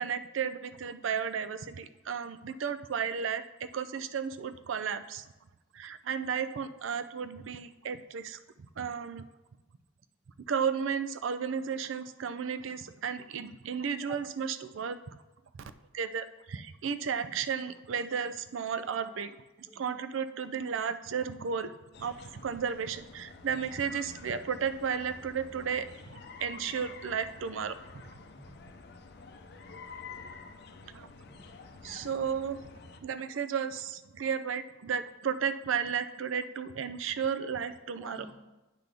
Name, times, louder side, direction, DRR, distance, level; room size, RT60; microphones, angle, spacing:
voice 1, 0.0-5.3 5.7-8.4 8.8-9.3 10.5-15.0 15.6-19.3 19.6-21.7 22.0-27.7 30.9-31.1 31.8-32.6 33.0-38.3, right 7 dB, 80° right, 11 dB, 0.4 m, -33 dB
sound 1, 21.9-33.0, left 4 dB, 60° left, 0.6 m, -49 dB
voice 2, 31.3-32.0 33.0-33.2 38.0-38.3, equal, 5° right, -3 dB, 0.6 m, -53 dB
9.1 x 5.9 x 3.5 m, 1.0 s
head